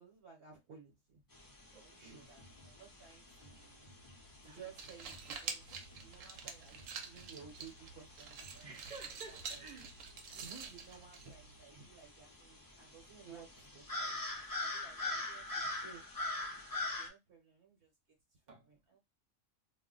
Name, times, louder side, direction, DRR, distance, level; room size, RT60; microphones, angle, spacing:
voice 1, 0.0-3.8 4.4-8.8 9.3-9.6 10.3-16.5 16.9-17.9 18.3-19.0, right 6 dB, 60° right, 1.1 m, -57 dB
sound 1, 1.3-17.1, left 2 dB, 25° left, 0.4 m, -45 dB
voice 2, 1.7-2.3 4.4-4.6 8.6-10.0 18.5-18.7, right 4 dB, 40° right, 0.9 m, -53 dB
sound 2, 2.4-9.0, left 1 dB, 45° left, 0.8 m, -63 dB
sound 3, 4.6-11.6, right 5 dB, 90° right, 1.0 m, -47 dB
2.3 x 2.0 x 3.8 m
omnidirectional pair, 1.3 m